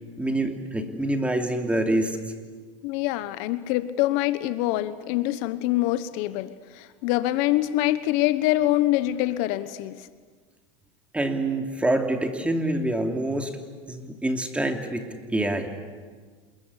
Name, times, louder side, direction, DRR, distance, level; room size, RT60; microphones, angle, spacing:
voice 1, 0.2-2.2 11.1-13.5 13.9-15.0 15.3-15.7, right 1 dB, 10° right, 5 dB, 3.1 m, -26 dB
voice 2, 2.8-10.1, left 15 dB, 60° left, 13 dB, 1.2 m, -25 dB
27.5 x 21.5 x 9.9 m, 1.5 s
supercardioid pair, 120°, 16 cm